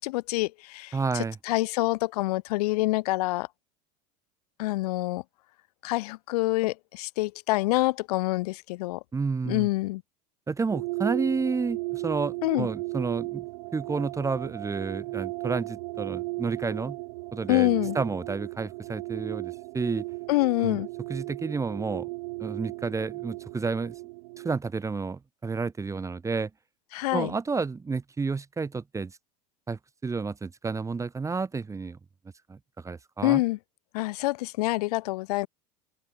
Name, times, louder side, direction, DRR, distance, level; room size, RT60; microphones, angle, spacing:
voice 1, 0.0-3.5 4.6-5.2 5.8-9.0 9.5-10.0 12.4-12.7 17.5-18.0 20.3-20.9 26.9-27.3 33.2-33.6 33.9-35.5, left 20 dB, 65° left, 0.7 m, -26 dB
voice 2, 0.9-1.4 9.1-9.7 10.5-13.4 13.7-17.0 17.3-20.0 20.6-20.8 21.1-22.1 22.4-23.9 24.4-26.5 27.1-29.1 29.7-32.0 32.5-32.6 32.8-33.4, right 4 dB, 15° right, 0.8 m, -30 dB
sound 1, 10.7-24.6, right 26 dB, 60° right, 1.5 m, -36 dB
open air
hypercardioid pair, 80°, 21 cm